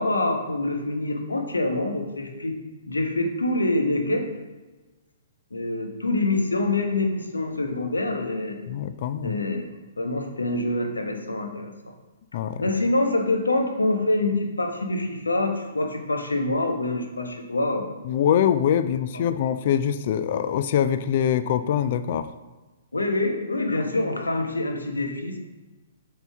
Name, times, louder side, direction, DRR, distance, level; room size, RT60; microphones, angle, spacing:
voice 1, 0.0-4.3 5.5-8.6 9.2-9.7 10.0-11.7 12.6-17.9 19.1-19.2 22.9-25.4, left 2 dB, 75° left, 4 dB, 1.1 m, -25 dB
voice 2, 8.7-9.3 12.3-12.6 18.1-22.3, left 9 dB, 45° left, 12 dB, 0.4 m, -23 dB
8.1 x 5.5 x 3.5 m, 1.2 s
figure-of-eight pair, 120°, 0 cm